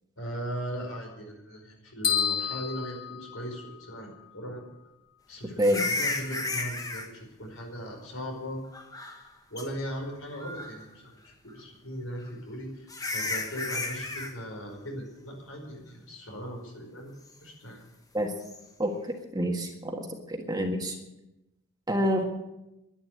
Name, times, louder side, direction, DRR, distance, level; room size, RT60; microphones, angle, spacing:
voice 1, 0.2-4.6 5.3-8.6 9.5-17.9, equal, 70° left, 2 dB, 5.0 m, -39 dB
sound 1, 2.0-4.0, left 8 dB, 40° left, 2.6 m, -30 dB
sound 2, 5.6-7.1 8.7-9.3 9.6-9.7 10.3-10.8 12.2-12.3 12.9-14.3 18.4-18.6, left 3 dB, 15° left, 1.3 m, -33 dB
voice 2, 19.3-21.0 21.9-22.2, equal, 20° right, 3 dB, 1.6 m, -27 dB
11.0 x 11.0 x 9.4 m, 0.95 s
head